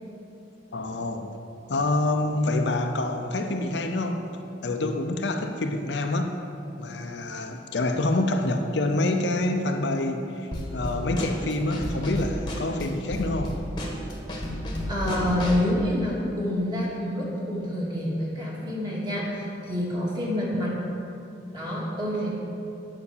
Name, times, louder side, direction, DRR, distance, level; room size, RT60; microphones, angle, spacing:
voice 1, 0.7-1.3 1.7-4.2 4.6-6.3 6.8-13.6, left 2 dB, 65° left, 5 dB, 0.7 m, -27 dB
Drum kit / Snare drum, 10.5-15.7, equal, 25° left, 1.2 m, -32 dB
voice 2, 14.9-20.8 21.5-22.3, left 1 dB, 25° right, -5 dB, 2.3 m, -27 dB
9.5 x 5.9 x 6.8 m, 2.7 s
head